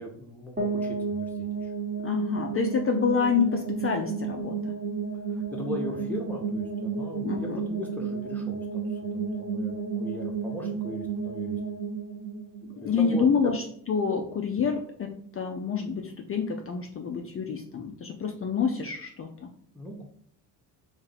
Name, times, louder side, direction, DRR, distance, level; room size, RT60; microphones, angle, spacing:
voice 1, 0.0-1.7 3.8-3.9 5.3-11.6 12.8-13.5 19.7-20.0, equal, 5° left, -1 dB, 0.9 m, -38 dB
sound 1, 0.6-13.5, right 5 dB, 20° right, 1.0 m, -32 dB
voice 2, 2.0-4.6 7.2-7.6 12.7-19.5, left 6 dB, 30° left, 3 dB, 0.5 m, -28 dB
2.7 x 2.6 x 4.0 m, 0.63 s
hypercardioid pair, 60°, 45 cm